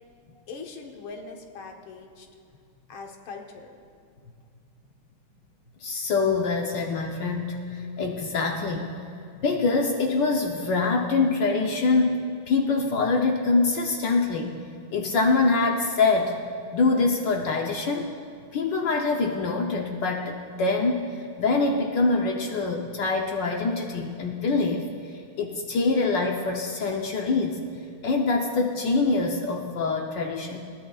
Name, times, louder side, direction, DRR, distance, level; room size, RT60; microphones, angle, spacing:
voice 1, 0.5-2.3 2.9-3.8, left 4 dB, 85° left, 2 dB, 2.0 m, -41 dB
voice 2, 5.8-8.9 9.4-14.6 14.9-16.3 16.7-18.1 18.5-24.9 25.4-27.6 28.0-30.6, left 3 dB, 65° left, 1 dB, 1.5 m, -24 dB
21.0 x 15.5 x 2.4 m, 2.4 s
omnidirectional pair, 2.2 m